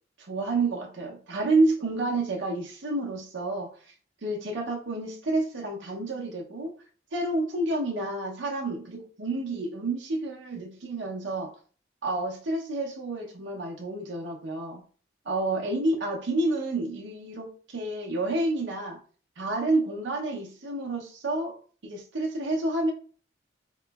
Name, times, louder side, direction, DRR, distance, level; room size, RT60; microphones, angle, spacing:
voice 1, 0.3-3.7 4.2-6.7 7.1-11.5 12.0-14.8 15.3-19.0 19.4-21.6 21.8-22.9, right 2 dB, 75° right, -1 dB, 0.6 m, -29 dB
3.6 x 2.9 x 2.3 m, 0.42 s
head